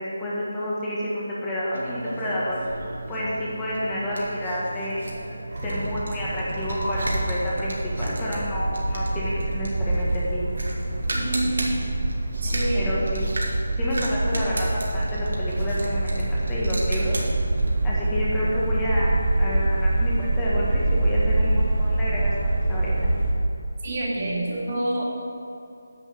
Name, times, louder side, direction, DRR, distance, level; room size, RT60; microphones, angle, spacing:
voice 1, 0.2-2.6 3.1-5.0 5.6-10.4 12.7-13.3 13.8-17.1 17.8-22.9, equal, 10° left, -7 dB, 1.6 m, -29 dB
sound 1, 1.7-17.8, right 1 dB, 85° right, 2.3 m, -35 dB
sound 2, 5.5-23.3, right 2 dB, 65° right, 2.8 m, -25 dB
voice 2, 11.1-11.7 12.4-12.9 23.8-25.0, right 2 dB, 40° right, -4 dB, 2.4 m, -27 dB
10.0 x 6.3 x 7.4 m, 2.7 s
figure-of-eight pair, 170°, 0 cm